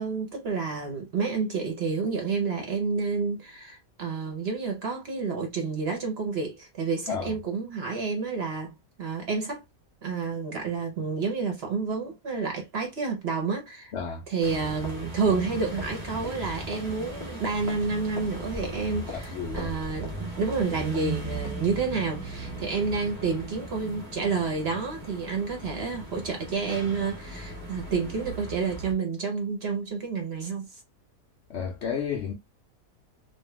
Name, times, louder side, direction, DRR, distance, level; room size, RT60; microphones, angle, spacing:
voice 1, 0.0-9.6 10.0-13.9 14.3-30.7, right 4 dB, 50° right, 0.9 m, -29 dB
voice 2, 13.9-14.2 19.3-19.7 31.5-32.3, left 6 dB, 65° left, 0.7 m, -31 dB
sound 1, 14.4-28.9, right 1 dB, 20° right, 1.1 m, -37 dB
2.6 x 2.3 x 3.0 m
omnidirectional pair, 1.6 m